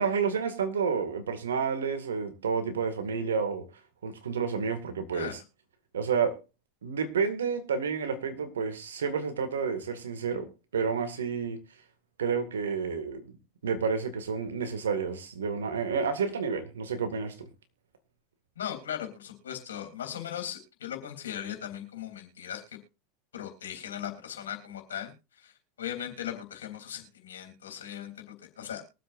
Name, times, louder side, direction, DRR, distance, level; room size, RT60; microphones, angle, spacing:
voice 1, 0.0-3.6 4.0-5.4 5.9-6.3 6.8-11.6 12.2-13.3 13.6-17.5, right 6 dB, 80° right, 8 dB, 2.0 m, -30 dB
voice 2, 18.5-22.8 23.3-25.5 25.8-28.8, left 10 dB, 80° left, 4 dB, 3.4 m, -38 dB
22.5 x 7.7 x 2.6 m, 0.30 s
hypercardioid pair, 90°, 0 cm